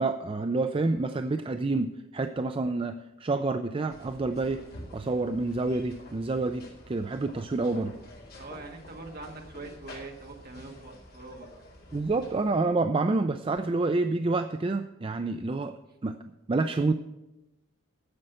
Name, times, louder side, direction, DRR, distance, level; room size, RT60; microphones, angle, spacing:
voice 1, 0.0-4.6 4.9-7.9 11.9-15.7 16.0-16.2 16.5-16.9, right 3 dB, 25° right, 8 dB, 0.4 m, -28 dB
sound 1, 3.9-12.6, left 1 dB, 50° left, 2.3 m, -49 dB
voice 2, 8.3-11.5, right 3 dB, 45° right, 2 dB, 1.6 m, -43 dB
9.6 x 7.6 x 7.8 m, 0.97 s
head